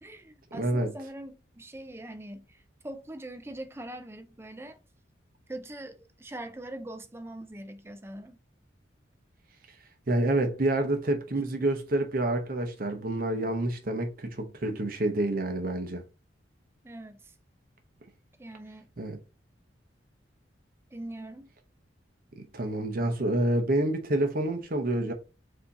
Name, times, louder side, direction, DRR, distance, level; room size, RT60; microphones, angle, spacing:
voice 1, 0.0-4.8 5.5-8.4 16.8-17.3 18.4-18.9 20.9-21.5, right 1 dB, 15° right, 0.5 m, -42 dB
voice 2, 0.6-0.9 10.1-16.0 19.0-19.2 22.4-25.1, right 1 dB, 50° right, 0.8 m, -28 dB
4.8 x 2.7 x 4.0 m
head